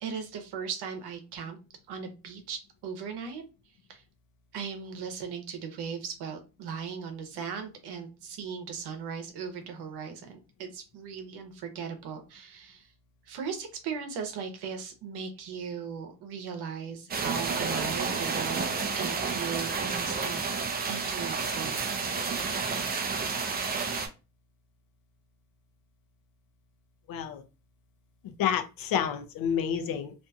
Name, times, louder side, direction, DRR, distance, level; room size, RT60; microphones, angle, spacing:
voice 1, 0.0-1.6 1.9-3.5 3.9-4.0 4.5-12.9 13.3-18.6 18.9-20.4 20.9-21.9, right 6 dB, 80° right, 0.9 m, -38 dB
sound 1, 17.1-24.1, right 5 dB, 25° right, 0.4 m, -30 dB
voice 2, 27.1-27.4 28.2-30.1, left 8 dB, 60° left, 0.5 m, -29 dB
2.7 x 2.6 x 2.3 m
cardioid pair, 145°, 39 cm